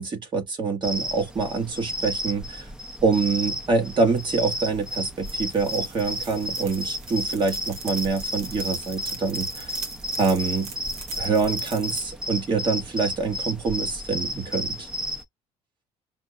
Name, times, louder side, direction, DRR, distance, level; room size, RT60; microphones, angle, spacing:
voice 1, 0.0-2.6 3.0-9.7 10.2-10.7 11.2-14.9, right 4 dB, 40° right, 1.6 m, -25 dB
sound 1, 0.8-15.2, equal, 5° right, 0.6 m, -33 dB
sound 2, 4.1-12.1, right 6 dB, 60° right, 1.1 m, -43 dB
5.8 x 2.1 x 2.5 m
cardioid pair, 105°, 12 cm